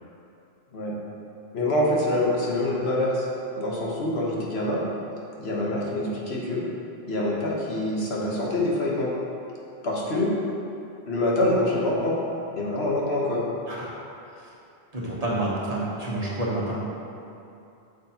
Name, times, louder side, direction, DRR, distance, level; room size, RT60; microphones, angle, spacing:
voice 1, 1.5-3.3 3.6-4.8 5.4-6.6 7.1-9.1 9.8-10.3 11.1-12.2 12.5-13.4, left 1 dB, 75° left, -4 dB, 1.4 m, -25 dB
voice 2, 14.9-16.8, right 1 dB, 35° right, -6 dB, 1.3 m, -28 dB
8.2 x 6.3 x 2.9 m, 2.7 s
omnidirectional pair, 1.1 m